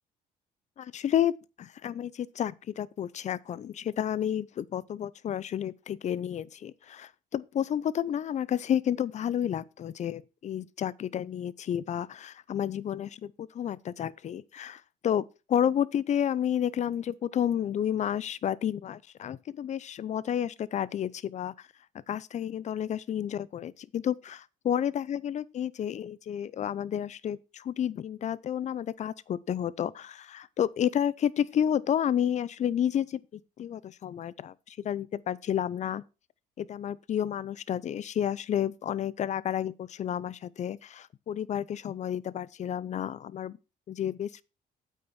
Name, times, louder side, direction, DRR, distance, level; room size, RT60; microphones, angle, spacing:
voice 1, 0.8-1.3 1.6-15.2 15.5-21.5 22.1-36.0 36.6-43.6 43.9-44.4, left 9 dB, 45° left, 0.6 m, -31 dB
8.8 x 8.4 x 4.3 m
cardioid pair, 110°, 17 cm